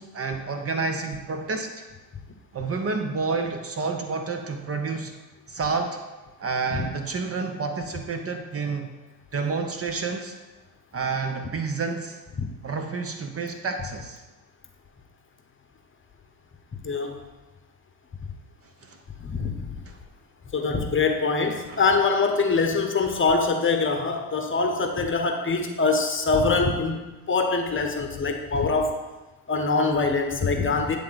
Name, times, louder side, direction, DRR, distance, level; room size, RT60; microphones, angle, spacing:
voice 1, 0.0-1.7 2.5-5.1 5.5-6.0 6.4-8.9 9.3-10.3 10.9-12.2 12.6-14.2 18.8-19.0 19.9-20.0 21.7-21.8, right 4 dB, 35° right, 5 dB, 0.8 m, -29 dB
voice 2, 16.8-17.2 19.2-19.7 20.5-29.0 29.5-31.0, left 4 dB, 30° left, 4 dB, 0.9 m, -24 dB
8.6 x 3.4 x 4.0 m, 1.2 s
hypercardioid pair, 65°, 42 cm